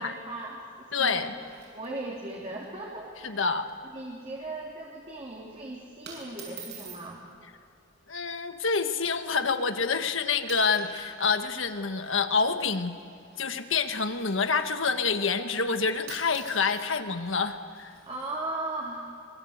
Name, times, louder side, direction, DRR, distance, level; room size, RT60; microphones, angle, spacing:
voice 1, 0.0-3.4 3.9-7.2 18.1-19.1, right 2 dB, 30° right, -3 dB, 3.1 m, -38 dB
voice 2, 0.9-1.3 3.2-3.6 8.1-12.9 13.4-18.0, left 5 dB, 75° left, 7 dB, 1.5 m, -27 dB
sound 1, 1.2-2.3 2.6-2.7 3.0-3.2 3.6-3.9 4.3-4.6 5.3-5.6 6.0-7.1 8.1-8.4 9.0-9.1 9.9-10.1 10.4-11.1 11.4-14.9 15.7-15.8 16.0-18.3, right 5 dB, 60° right, 7.4 m, -48 dB
25.0 x 22.0 x 8.1 m, 2.4 s
head